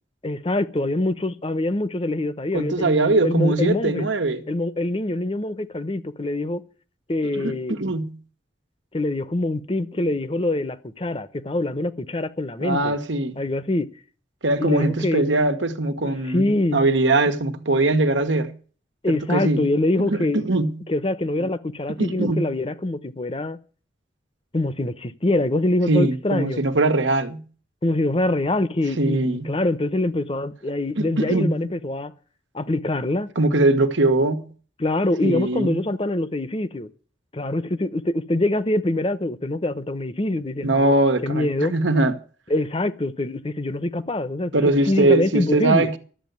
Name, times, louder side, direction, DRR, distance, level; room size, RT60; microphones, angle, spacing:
voice 1, 0.2-4.1 4.5-6.6 7.1-7.8 8.9-13.0 13.4-13.9 14.6-15.2 16.2-16.8 19.0-20.4 20.9-23.6 24.5-26.6 27.8-32.1 32.5-33.3 34.8-36.9 37.3-40.9 41.2-41.7 42.5-45.9, left 2 dB, 30° left, 0.8 m, -24 dB
voice 2, 2.5-4.4 7.3-8.2 12.6-13.4 14.4-18.5 19.3-19.7 20.0-20.8 21.4-21.5 22.0-22.5 25.9-27.4 29.0-29.5 31.0-31.6 33.3-34.5 35.2-35.8 40.6-42.1 44.5-46.0, right 2 dB, 85° right, 1.4 m, -21 dB
12.5 x 8.1 x 9.4 m
head